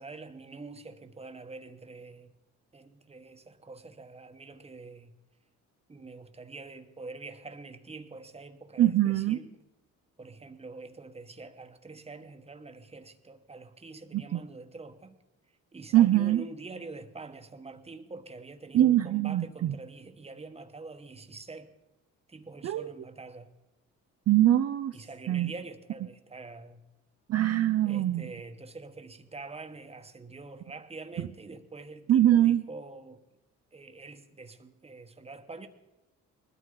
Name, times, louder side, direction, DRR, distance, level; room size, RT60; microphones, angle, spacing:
voice 1, 0.0-2.3 2.7-5.1 5.9-9.5 10.2-15.2 15.7-21.7 22.3-23.5 24.9-26.8 27.8-33.2 33.7-35.7, right 3 dB, 20° right, 1.2 m, -45 dB
voice 2, 8.8-9.4 14.1-14.4 15.9-16.4 18.7-19.7 22.6-22.9 24.3-24.9 25.3-25.5 27.3-28.2 31.2-31.3 32.1-32.6, right 12 dB, 55° right, 0.5 m, -23 dB
20.0 x 12.5 x 3.8 m
cardioid pair, 90°, 30 cm